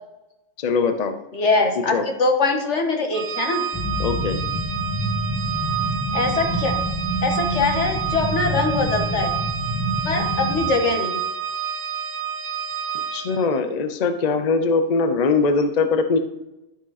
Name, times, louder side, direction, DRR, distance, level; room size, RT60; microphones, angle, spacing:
voice 1, 0.6-1.1 1.8-2.1 4.0-4.4 13.1-16.2, left 4 dB, 45° left, 8 dB, 0.6 m, -21 dB
voice 2, 1.3-1.9 2.2-3.6 6.1-6.8 7.2-9.3 10.1-11.2, left 3 dB, 80° left, 2 dB, 1.8 m, -22 dB
Organ, 3.1-13.5, right 8 dB, 50° right, 0.7 m, -29 dB
sound 1, 3.7-10.7, equal, 20° left, 2.2 m, -27 dB
13.0 x 5.1 x 4.1 m, 0.94 s
omnidirectional pair, 1.2 m